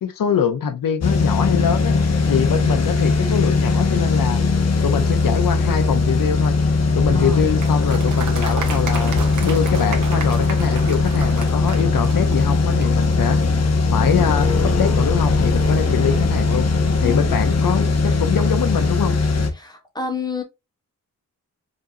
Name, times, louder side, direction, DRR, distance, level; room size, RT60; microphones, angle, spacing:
voice 1, 0.0-2.0 2.3-4.4 4.8-6.5 6.9-9.2 9.4-13.4 13.9-16.7 17.0-19.2, left 7 dB, 80° left, 0.7 m, -23 dB
sound 1, 1.0-19.5, left 3 dB, 50° left, 1.0 m, -19 dB
voice 2, 2.2-2.6 7.1-7.5 17.0-17.6 19.5-20.4, left 4 dB, 10° left, 1.6 m, -30 dB
Applause, 7.6-13.1, right 5 dB, 60° right, 1.3 m, -33 dB
5.2 x 3.9 x 2.6 m
wide cardioid pair, 170°, 34 cm